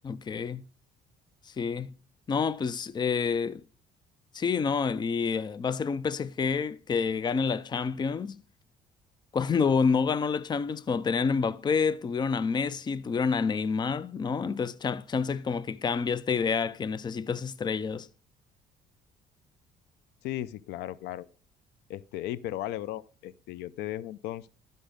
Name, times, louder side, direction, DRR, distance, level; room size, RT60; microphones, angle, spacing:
voice 1, 0.0-0.6 1.6-1.9 2.3-3.6 4.3-8.4 9.3-18.1, left 5 dB, 25° left, 0.5 m, -28 dB
voice 2, 20.2-21.3 21.9-24.5, left 13 dB, 85° left, 0.5 m, -36 dB
12.0 x 5.4 x 5.1 m
cardioid pair, 110°, 17 cm